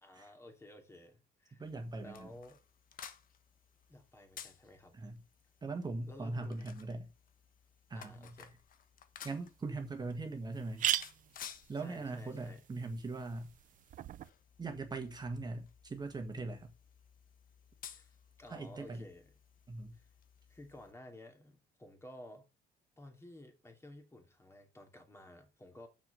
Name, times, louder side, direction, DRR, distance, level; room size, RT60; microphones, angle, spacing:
voice 1, 0.0-1.6 2.0-2.6 3.9-5.0 6.1-6.6 7.9-8.5 11.8-12.6 17.9-18.1 18.4-19.3 19.9-20.1 20.5-22.5 23.0-25.9, left 1 dB, 15° left, 2.7 m, -54 dB
sound 1, 1.6-20.9, left 8 dB, 55° left, 1.2 m, -56 dB
voice 2, 1.6-2.3 4.9-5.2 5.6-7.1 7.9-8.3 9.2-10.8 11.7-13.5 14.6-16.7 18.5-19.0 19.7-19.9, right 3 dB, 25° right, 1.7 m, -40 dB
sound 2, 9.2-9.3 9.8-9.9 10.1-10.2 10.5-14.3, right 12 dB, 50° right, 0.5 m, -39 dB
7.1 x 5.9 x 7.6 m
cardioid pair, 110°, 17 cm